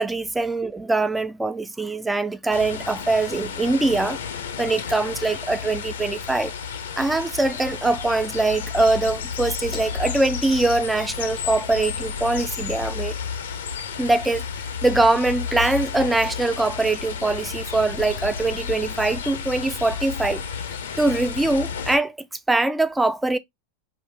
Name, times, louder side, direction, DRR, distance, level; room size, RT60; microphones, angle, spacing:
voice 1, 0.0-4.2 4.6-6.5 7.0-13.1 14.0-14.4 14.8-20.4 21.0-22.1 22.5-23.4, right 2 dB, 10° right, 0.4 m, -22 dB
sound 1, 2.5-22.0, left 6 dB, 80° left, 0.6 m, -32 dB
2.6 x 2.5 x 3.2 m
hypercardioid pair, 105°, 0 cm